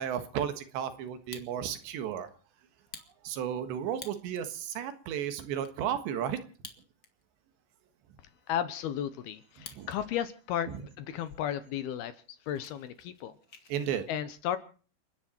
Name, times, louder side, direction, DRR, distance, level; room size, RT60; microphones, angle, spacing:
voice 1, 0.0-2.3 3.2-6.4 9.8-9.9 13.7-14.1, right 9 dB, 85° right, 10 dB, 3.8 m, -33 dB
Fire, 1.1-1.9 2.3-2.4 2.8-4.5 5.0-5.1 5.3-5.7 6.5-7.3 7.6-7.7 8.2-10.0 10.3-10.7 11.3-11.4 11.7-11.9 12.1-13.9, left 5 dB, 45° left, 1.3 m, -50 dB
voice 2, 8.5-13.3 14.1-14.6, left 10 dB, 70° left, 12 dB, 2.7 m, -34 dB
30.0 x 10.0 x 4.4 m, 0.41 s
omnidirectional pair, 5.0 m